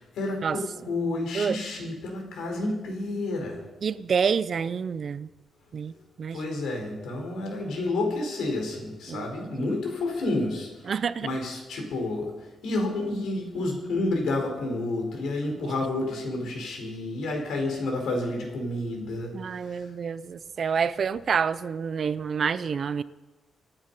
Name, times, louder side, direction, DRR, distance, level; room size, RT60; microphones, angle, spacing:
voice 1, 0.0-3.6 6.3-10.9 11.2-19.9, left 2 dB, 85° left, 2 dB, 4.6 m, -30 dB
voice 2, 3.8-5.3 5.7-6.4 9.1-9.3 9.5-9.7 10.9-11.3 15.6-15.7 19.3-23.0, right 6 dB, 40° right, 16 dB, 0.5 m, -28 dB
26.0 x 9.0 x 5.5 m, 1.2 s
wide cardioid pair, 170°, 0 cm